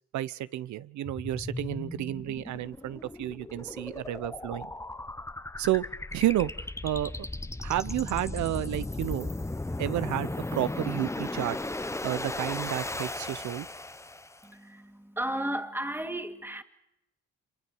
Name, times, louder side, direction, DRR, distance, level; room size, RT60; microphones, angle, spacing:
voice 1, 0.1-4.7 5.6-5.8 6.1-7.1 7.6-9.3 9.8-11.6 12.0-13.7, right 14 dB, 75° right, 1.0 m, -31 dB
sound 1, 1.1-14.5, left 2 dB, 10° left, 0.9 m, -36 dB
voice 2, 14.4-16.6, right 1 dB, 5° right, 2.4 m, -34 dB
26.5 x 24.5 x 6.4 m
cardioid pair, 75°, 29 cm